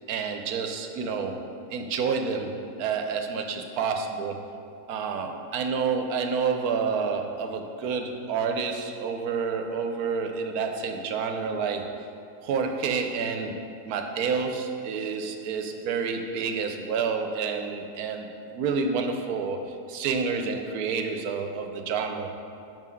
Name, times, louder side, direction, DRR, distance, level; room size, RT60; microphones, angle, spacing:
voice 1, 0.1-1.4 1.7-2.5 2.8-4.4 4.9-11.9 12.4-22.3, right 5 dB, 75° right, 5 dB, 1.1 m, -29 dB
5.6 x 5.3 x 6.2 m, 2.7 s
omnidirectional pair, 1.7 m